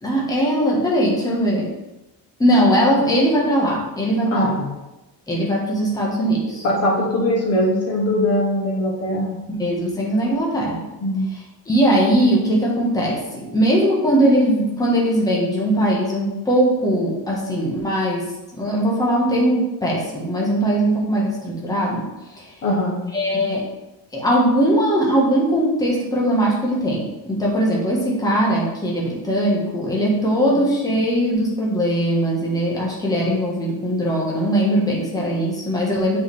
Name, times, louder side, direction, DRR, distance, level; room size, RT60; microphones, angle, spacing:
voice 1, 0.0-1.7 2.4-4.5 5.3-6.6 9.6-10.8 11.7-18.3 18.5-22.0 22.4-22.5 23.1-23.7 24.1-36.2, right 1 dB, 10° left, -4 dB, 1.3 m, -20 dB
voice 2, 4.3-4.7 6.6-9.4 11.0-11.3 22.6-23.1, left 1 dB, 35° left, -2 dB, 1.4 m, -21 dB
8.0 x 4.9 x 3.4 m, 1.0 s
cardioid pair, 175°, 44 cm